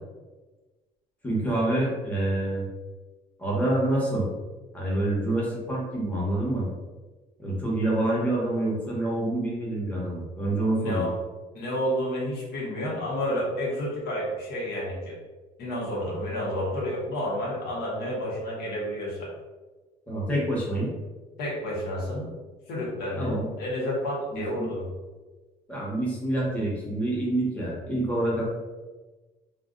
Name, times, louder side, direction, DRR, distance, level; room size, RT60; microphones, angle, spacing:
voice 1, 1.2-2.7 3.4-4.3 4.7-6.6 7.4-11.1 20.1-20.9 23.2-23.5 24.3-24.7 25.7-28.4, right 1 dB, 10° left, -6 dB, 1.1 m, -27 dB
voice 2, 10.7-11.1 11.5-15.2 15.6-19.3 21.4-22.3 22.7-24.9, left 1 dB, 70° left, -4 dB, 1.0 m, -30 dB
2.4 x 2.2 x 3.7 m, 1.2 s
cardioid pair, 110°, 17 cm